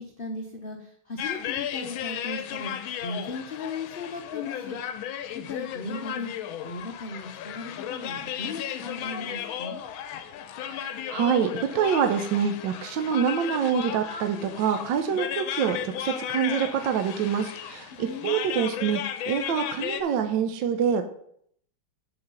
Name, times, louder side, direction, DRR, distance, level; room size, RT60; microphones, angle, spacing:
voice 1, 0.0-2.7 3.0-4.8 5.3-6.3 6.6-9.8 17.9-18.4, left 3 dB, 50° left, 2 dB, 0.6 m, -37 dB
sound 1, 1.2-20.0, left 10 dB, 85° left, 1.5 m, -35 dB
voice 2, 10.8-19.0 19.3-21.0, right 7 dB, 75° right, 8 dB, 1.3 m, -26 dB
6.5 x 4.8 x 6.8 m, 0.67 s
omnidirectional pair, 2.2 m